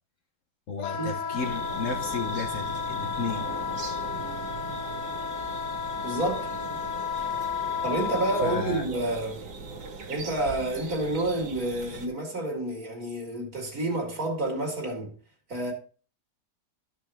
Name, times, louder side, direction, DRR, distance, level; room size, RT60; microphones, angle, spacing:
voice 1, 0.7-3.5 8.4-8.9, left 4 dB, 55° left, 1.1 m, -33 dB
Wind instrument woodwind instrument, 0.8-8.6, left 7 dB, 90° left, 2.0 m, -32 dB
sound 1, 1.4-12.1, right 4 dB, 75° right, 2.4 m, -40 dB
voice 2, 6.0-6.5 7.8-9.4 10.1-15.1 15.5-15.7, right 2 dB, 55° right, 2.7 m, -29 dB
12.5 x 5.7 x 3.4 m
omnidirectional pair, 1.8 m